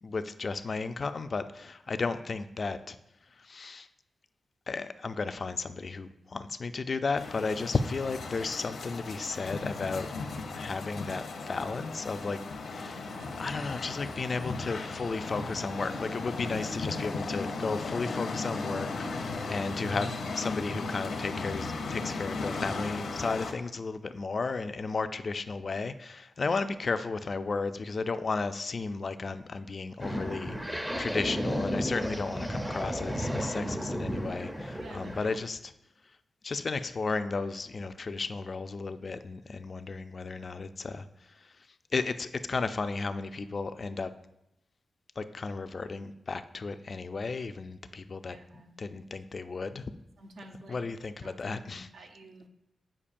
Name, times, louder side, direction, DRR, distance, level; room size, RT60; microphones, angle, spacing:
voice 1, 0.0-3.0 3.4-3.9 4.7-10.1 10.6-12.4 12.7-13.1 13.4-35.7 36.4-41.1 41.9-44.1 45.2-48.4 48.8-49.8 50.7-51.9, left 4 dB, 45° left, 10 dB, 0.3 m, -34 dB
sound 1, 7.2-23.5, left 3 dB, 85° left, 0.7 m, -36 dB
voice 2, 12.9-13.5 26.4-26.5 34.8-35.3 48.3-48.7 50.2-50.8 51.2-52.5, right 1 dB, 80° right, 4 dB, 0.7 m, -50 dB
sound 2, 30.0-35.4, equal, 10° right, 0.5 m, -33 dB
8.4 x 5.2 x 2.5 m, 0.83 s
wide cardioid pair, 115°, 0 cm